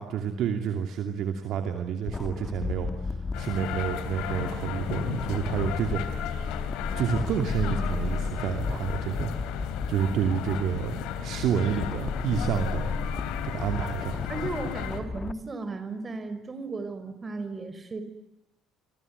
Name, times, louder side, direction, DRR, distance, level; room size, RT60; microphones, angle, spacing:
voice 1, 0.0-6.1 6.9-9.3 9.9-12.9 13.4-14.3, right 8 dB, 55° right, 5 dB, 2.7 m, -29 dB
sound 1, 2.1-15.3, left 4 dB, 30° left, 1.9 m, -34 dB
sound 2, 3.3-15.0, left 10 dB, 65° left, 2.9 m, -35 dB
voice 2, 14.3-18.0, right 3 dB, 30° right, 11 dB, 5.8 m, -35 dB
29.0 x 25.5 x 8.1 m, 0.90 s
hypercardioid pair, 55°, 0 cm